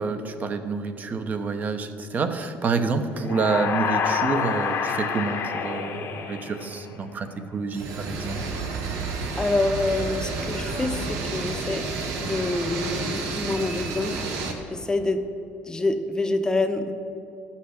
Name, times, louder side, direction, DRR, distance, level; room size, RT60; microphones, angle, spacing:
voice 1, 0.0-8.4, right 4 dB, 35° right, 8 dB, 0.9 m, -28 dB
sound 1, 3.2-7.1, left 6 dB, 55° left, 1.1 m, -28 dB
sound 2, 7.7-14.5, right 3 dB, 80° right, 1.3 m, -30 dB
voice 2, 9.4-11.9 12.2-14.3 14.7-15.3 15.7-16.9, left 2 dB, 15° left, 7 dB, 0.8 m, -26 dB
12.5 x 5.7 x 6.5 m, 2.7 s
cardioid pair, 110°, 5 cm